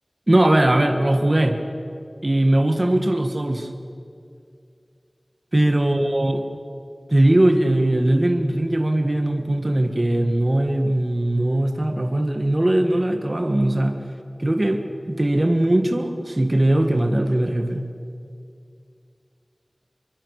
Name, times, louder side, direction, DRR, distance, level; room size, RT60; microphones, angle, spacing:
voice 1, 0.3-1.6 2.2-3.7 5.5-6.4 7.1-14.0 14.4-17.9, right 1 dB, 40° right, 5 dB, 1.8 m, -20 dB
28.0 x 23.0 x 6.5 m, 2.4 s
wide cardioid pair, 50°, 0 cm